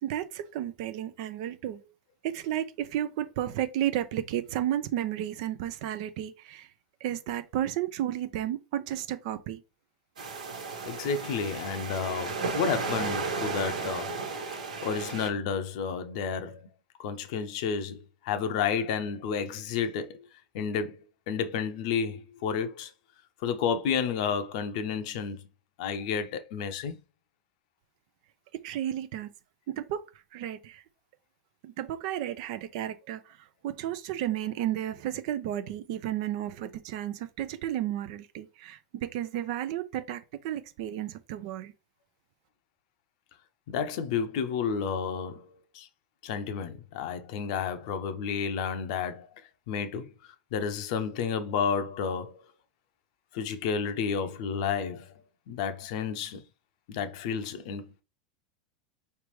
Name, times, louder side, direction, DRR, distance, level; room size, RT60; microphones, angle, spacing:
voice 1, 0.0-1.8 2.2-6.7 7.0-9.6 28.5-29.3 29.7-30.1 30.3-30.8 31.6-33.4 33.6-41.7, right 12 dB, 55° right, 0.6 m, -33 dB
sound 1, 10.2-15.3, right 4 dB, 75° right, 1.3 m, -34 dB
voice 2, 10.9-14.2 14.8-16.7 17.0-20.3 20.5-21.0 21.3-22.9 23.4-25.4 25.8-27.0 43.7-45.5 45.7-45.9 46.2-49.3 49.7-52.4 53.3-55.1 55.5-56.4 56.9-58.0, left 6 dB, 55° left, 0.7 m, -31 dB
5.0 x 3.3 x 3.1 m
figure-of-eight pair, 90°, 4 cm